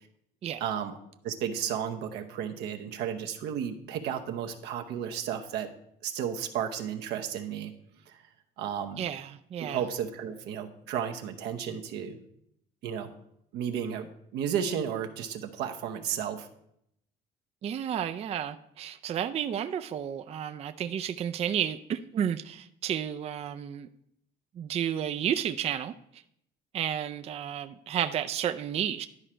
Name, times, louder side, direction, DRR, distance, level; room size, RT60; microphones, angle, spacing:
voice 1, 0.6-0.9 1.2-5.7 6.0-7.7 8.1-8.2 8.6-9.0 9.6-12.2 12.8-13.1 13.5-16.5, right 8 dB, 85° right, 5 dB, 0.9 m, -33 dB
voice 2, 9.0-9.8 17.6-23.9 24.6-25.9 26.7-29.1, right 9 dB, 40° right, 9 dB, 0.4 m, -32 dB
11.0 x 5.0 x 4.4 m, 0.74 s
cardioid pair, 110°, 17 cm